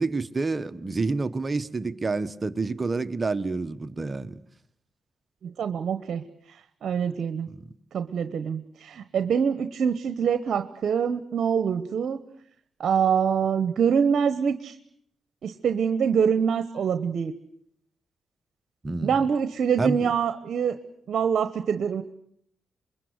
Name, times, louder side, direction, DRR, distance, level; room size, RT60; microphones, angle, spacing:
voice 1, 0.0-4.4 7.5-7.6 18.8-19.2 19.8-20.1, right 3 dB, 30° right, 1.3 m, -28 dB
voice 2, 5.4-7.5 7.9-12.2 12.8-14.8 15.4-17.3 19.0-20.8 21.1-22.0, right 7 dB, 65° right, 1.1 m, -25 dB
27.0 x 22.0 x 8.1 m
cardioid pair, 70°, 0 cm